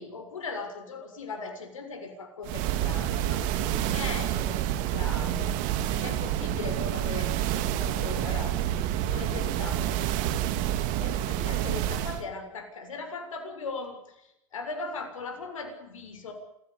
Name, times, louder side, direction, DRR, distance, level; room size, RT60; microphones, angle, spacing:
voice 1, 0.0-5.6 5.9-8.8 9.1-10.4 11.0-16.3, left 4 dB, 85° left, 6 dB, 6.9 m, -39 dB
sound 1, 2.5-12.2, right 12 dB, 55° right, 3.1 m, -28 dB
27.5 x 16.5 x 9.9 m, 0.83 s
hypercardioid pair, 100°, 16 cm